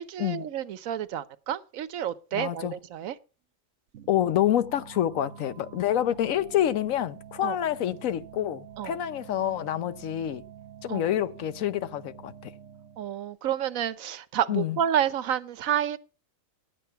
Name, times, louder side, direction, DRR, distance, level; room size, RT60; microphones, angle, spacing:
voice 1, 0.0-3.2 7.4-7.6 8.8-9.0 10.9-11.1 13.0-16.0, right 10 dB, 90° right, 1.2 m, -29 dB
voice 2, 2.3-2.7 4.1-10.4 10.8-12.5 14.5-14.8, left 11 dB, 80° left, 1.1 m, -27 dB
sound 1, 3.9-13.2, right 9 dB, 65° right, 1.2 m, -47 dB
11.0 x 8.6 x 5.7 m
omnidirectional pair, 1.4 m